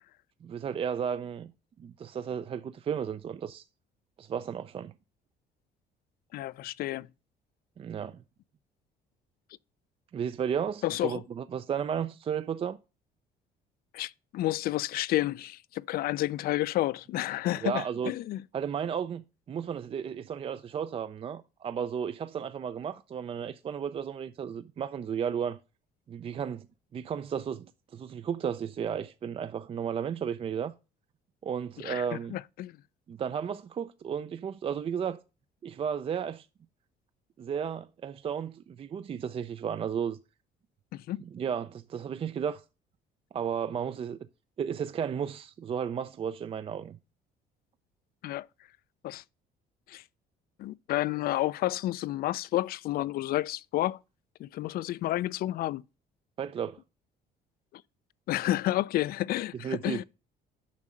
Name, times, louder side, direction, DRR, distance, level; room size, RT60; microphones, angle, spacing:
voice 1, 0.4-1.5 1.8-3.6 4.2-4.9 7.8-8.2 10.1-12.8 17.6-18.1 18.5-25.6 26.1-26.7 26.9-30.7 31.4-32.4 33.1-35.2 35.6-36.5 37.4-40.2 41.2-42.6 43.3-44.2 44.6-47.0 56.4-56.8 59.6-60.0, right 7 dB, 35° right, 0.4 m, -33 dB
voice 2, 6.3-7.1 10.8-11.2 13.9-18.4 31.8-32.7 40.9-41.2 48.2-48.5 49.0-49.2 49.9-50.0 50.6-54.0 54.4-55.8 58.3-60.0, left 15 dB, 60° left, 0.4 m, -30 dB
7.2 x 5.5 x 6.2 m
cardioid pair, 110°, 17 cm